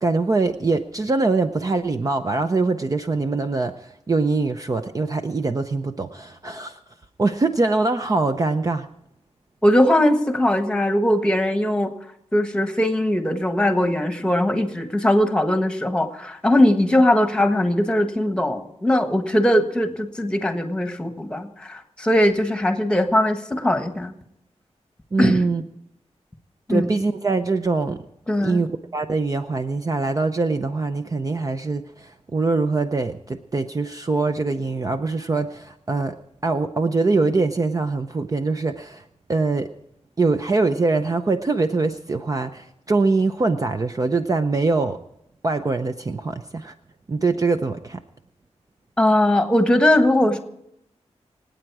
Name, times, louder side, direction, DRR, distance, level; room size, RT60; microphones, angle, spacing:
voice 1, 0.0-6.8 7.2-8.9 25.1-25.6 26.7-28.0 28.4-28.7 28.9-36.2 36.4-39.7 40.2-45.0 45.4-46.7 47.1-48.0, right 3 dB, 30° right, 7 dB, 0.6 m, -23 dB
voice 2, 9.6-11.9 12.3-24.1 25.2-25.4 26.7-26.9 28.3-28.6 49.0-50.4, left 1 dB, 10° left, 7 dB, 1.4 m, -20 dB
26.5 x 9.0 x 4.8 m, 0.78 s
wide cardioid pair, 160°, 12 cm